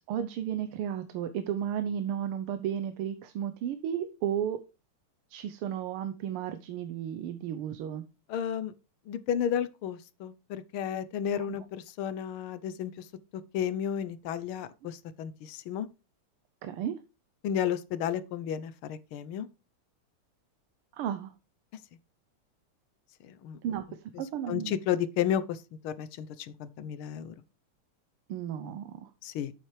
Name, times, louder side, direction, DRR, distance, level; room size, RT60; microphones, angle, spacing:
voice 1, 0.1-4.6 5.3-8.0 11.4-11.7 16.6-17.0 20.9-21.3 23.6-23.9 24.2-24.7 28.3-29.1, right 9 dB, 85° right, 1.7 m, -33 dB
voice 2, 8.3-8.7 9.1-13.0 13.5-15.9 17.4-19.5 23.2-23.6 24.5-27.3 29.2-29.5, left 9 dB, 75° left, 1.6 m, -32 dB
9.1 x 7.4 x 3.2 m
omnidirectional pair, 2.4 m